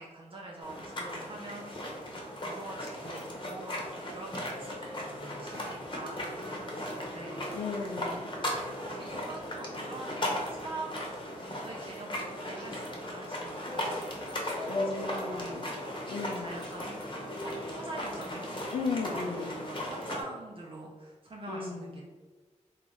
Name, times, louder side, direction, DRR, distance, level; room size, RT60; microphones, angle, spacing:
voice 1, 0.0-2.1 2.4-7.5 8.9-11.1 11.6-16.0 16.4-17.1 17.4-18.5 19.0-19.4 19.7-22.0, right 2 dB, 45° right, -2 dB, 0.5 m, -45 dB
sound 1, 0.6-20.2, left 1 dB, 35° left, 0.9 m, -37 dB
voice 2, 7.5-8.3 14.7-15.7 16.1-16.7 18.7-19.7 21.5-22.0, left 4 dB, 80° left, 4 dB, 0.5 m, -36 dB
3.0 x 2.3 x 3.9 m, 1.3 s
cardioid pair, 55°, 13 cm